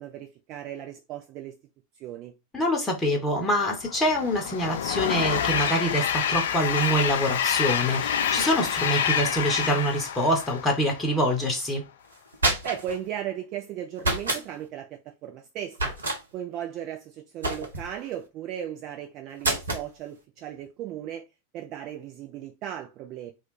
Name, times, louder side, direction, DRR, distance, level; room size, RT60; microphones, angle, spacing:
voice 1, 0.0-1.5 2.0-2.3 12.6-15.9 16.3-21.2 21.5-23.3, right 10 dB, 40° right, 0.5 m, -36 dB
voice 2, 2.5-11.8, equal, 10° left, 1.0 m, -25 dB
Train, 3.8-11.2, left 8 dB, 60° left, 0.3 m, -27 dB
sound 1, 12.1-13.0 14.0-14.4 15.7-16.2 17.4-17.9 19.4-19.9, right 2 dB, 70° right, 0.8 m, -27 dB
3.0 x 2.3 x 3.2 m
figure-of-eight pair, 90°, 0 cm